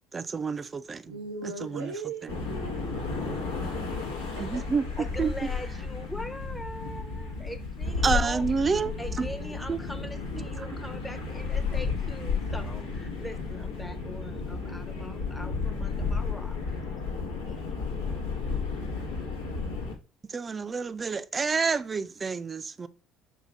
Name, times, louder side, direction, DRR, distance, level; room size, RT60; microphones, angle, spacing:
voice 1, 0.1-1.1 1.4-1.9 2.2-2.3 4.4-4.8 5.2-5.5 8.0-9.3 9.7-9.8 20.3-22.9, right 5 dB, 30° right, 0.4 m, -29 dB
voice 2, 1.0-4.6, right 4 dB, 90° right, 0.7 m, -40 dB
sound 1, 2.3-19.9, left 4 dB, 85° left, 1.0 m, -33 dB
voice 3, 5.0-8.5 8.7-16.6, left 1 dB, 10° left, 0.7 m, -41 dB
5.6 x 2.3 x 3.9 m
hypercardioid pair, 60°, 0 cm